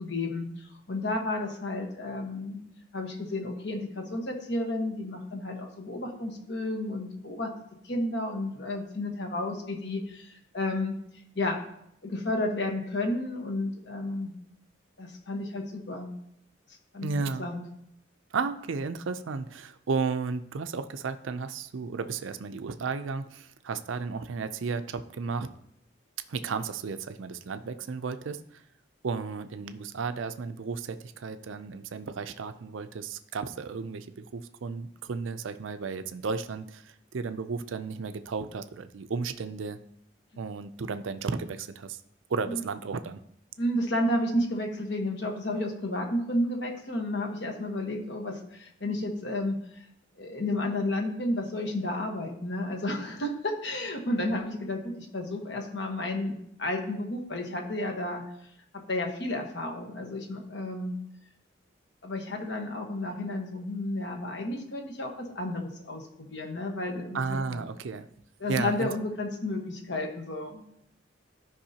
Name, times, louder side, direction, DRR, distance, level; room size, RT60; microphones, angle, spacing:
voice 1, 0.0-2.6 2.9-7.5 7.8-11.0 11.3-11.6 12.0-14.3 15.0-16.1 16.9-17.1 17.4-17.6 42.5-42.6 43.6-49.8 50.2-58.2 58.7-60.9 62.0-67.6 68.4-70.6, left 1 dB, 60° left, 2 dB, 1.3 m, -32 dB
voice 2, 17.0-17.5 18.3-25.5 26.3-28.6 29.0-39.8 40.4-42.0 42.3-43.2 67.1-68.1 68.5-68.9, right 4 dB, 80° right, 10 dB, 0.5 m, -33 dB
13.5 x 5.3 x 2.8 m, 0.73 s
head